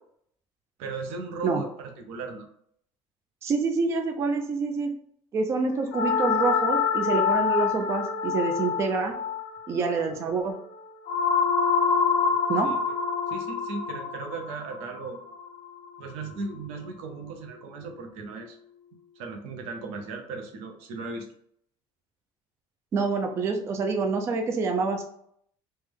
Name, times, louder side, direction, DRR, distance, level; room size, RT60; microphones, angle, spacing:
voice 1, 0.8-2.5 12.6-12.8 13.3-15.2 16.0-18.6 19.2-21.3, right 3 dB, 85° right, 4 dB, 0.7 m, -37 dB
voice 2, 3.4-4.9 5.3-9.2 9.7-10.5 12.5-12.7 22.9-25.0, right 4 dB, 25° right, 3 dB, 0.4 m, -27 dB
sound 1, 5.9-16.1, left 6 dB, 60° left, 0.7 m, -26 dB
3.2 x 2.1 x 3.5 m, 0.67 s
cardioid pair, 165°, 10 cm